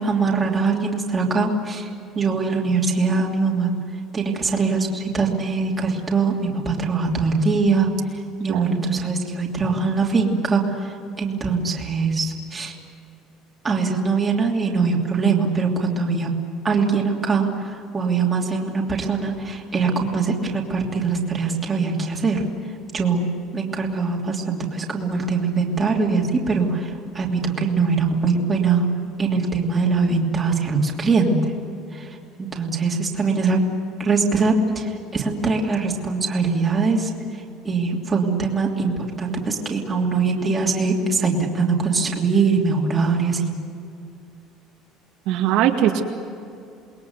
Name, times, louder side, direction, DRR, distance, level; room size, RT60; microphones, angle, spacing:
voice 1, 0.0-1.9 2.1-3.7 4.1-7.9 8.4-12.7 13.6-16.3 16.6-22.4 22.9-23.3 23.5-28.8 29.2-31.4 31.9-32.1 32.4-33.6 34.0-37.1 37.6-43.5, right 4 dB, 15° right, -1 dB, 2.9 m, -22 dB
voice 2, 8.5-9.0 45.3-46.0, right 11 dB, 65° right, 1 dB, 2.2 m, -21 dB
28.5 x 21.0 x 8.2 m, 2.5 s
cardioid pair, 170°, 0 cm